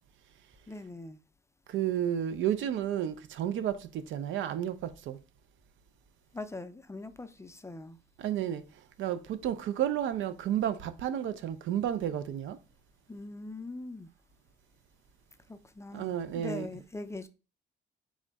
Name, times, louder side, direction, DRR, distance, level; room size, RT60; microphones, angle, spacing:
voice 1, 0.7-1.2 6.3-8.0 13.1-14.1 15.5-17.3, left 2 dB, 15° left, 0.4 m, -42 dB
voice 2, 1.7-5.2 8.2-8.6 9.0-12.6 15.9-16.7, right 10 dB, 75° right, 0.5 m, -31 dB
3.6 x 3.1 x 3.9 m
cardioid pair, 90°, 20 cm